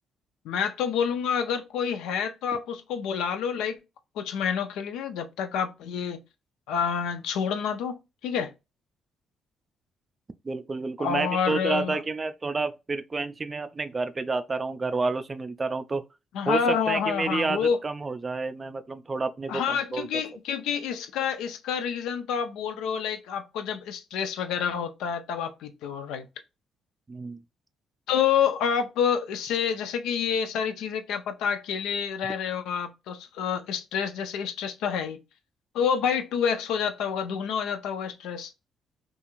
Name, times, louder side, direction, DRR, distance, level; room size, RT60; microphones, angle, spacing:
voice 1, 0.4-3.8 4.2-6.2 6.7-8.5 11.0-12.0 16.3-17.8 19.5-26.3 28.1-35.2 35.7-38.5, left 7 dB, 90° left, 0.4 m, -28 dB
voice 2, 10.4-16.0 16.5-16.6 16.9-20.1 27.1-27.4 32.2-32.3, right 3 dB, 30° right, 0.3 m, -29 dB
2.5 x 2.4 x 2.9 m
cardioid pair, 90°, 0 cm